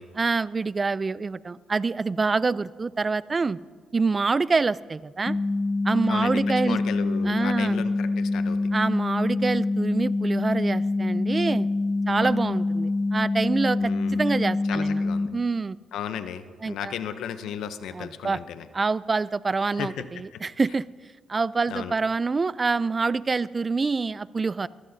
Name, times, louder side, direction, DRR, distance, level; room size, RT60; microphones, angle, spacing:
voice 1, 0.1-3.6 3.9-5.4 5.8-6.8 7.2-7.8 8.7-11.7 12.1-15.0 15.3-15.8 16.6-16.9 17.9-18.4 18.7-20.9 21.3-24.7, right 4 dB, 30° right, 19 dB, 0.3 m, -26 dB
sound 1, 5.3-15.3, left 2 dB, 20° left, 1.5 m, -25 dB
voice 2, 6.1-8.6 12.2-12.3 13.8-14.2 14.7-15.3 15.9-18.7 19.6-20.4 21.7-21.9, left 9 dB, 80° left, 10 dB, 0.7 m, -35 dB
23.0 x 15.0 x 2.7 m, 1.5 s
cardioid pair, 90°, 0 cm